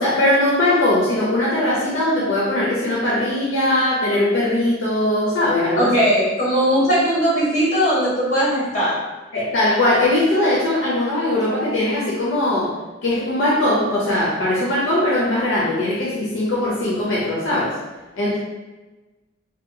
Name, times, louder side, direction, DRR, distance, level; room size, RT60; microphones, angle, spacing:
voice 1, 0.0-5.9 9.3-12.8 13.0-17.8 18.2-18.4, left 1 dB, 70° left, -7 dB, 0.5 m, -20 dB
voice 2, 5.8-8.9, equal, 40° left, -8 dB, 1.3 m, -19 dB
2.7 x 2.2 x 2.7 m, 1.2 s
head